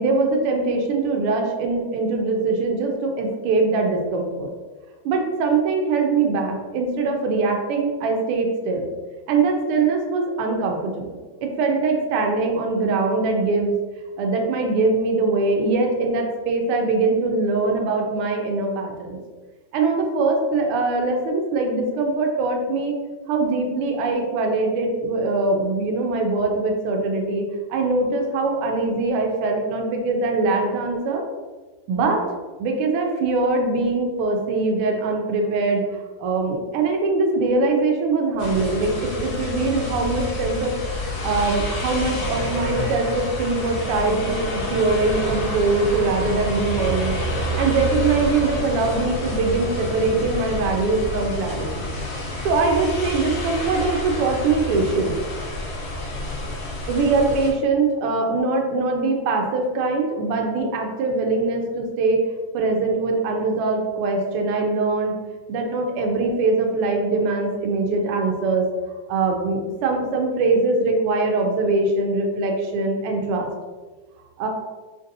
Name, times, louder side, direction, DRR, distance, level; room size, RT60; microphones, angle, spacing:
voice 1, 0.0-4.5 5.0-8.9 9.3-13.7 14.2-19.2 19.7-23.0 23.3-31.2 31.9-32.2 32.6-35.8 36.2-40.9 41.2-47.1 47.6-51.9 52.4-55.1 56.9-62.2 62.5-65.1 65.5-73.5 74.4-74.5, right 3 dB, 85° right, 2 dB, 1.5 m, -22 dB
sound 1, 38.4-57.5, left 1 dB, 80° left, 1.8 m, -28 dB
5.1 x 2.5 x 2.6 m, 1.3 s
omnidirectional pair, 2.4 m